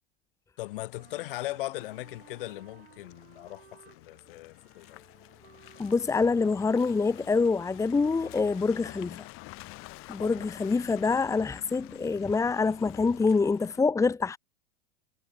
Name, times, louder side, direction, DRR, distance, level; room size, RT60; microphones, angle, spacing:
voice 1, 0.6-5.0 10.3-10.5, left 18 dB, 60° left, 3.4 m, -39 dB
Car passing by / Engine, 0.6-13.8, left 22 dB, 45° left, 6.0 m, -49 dB
Wind instrument woodwind instrument, 0.9-9.1, right 7 dB, 80° right, 6.6 m, -58 dB
voice 2, 5.8-9.2 10.1-14.4, left 4 dB, 10° left, 1.2 m, -26 dB
hypercardioid pair, 100°, 30 cm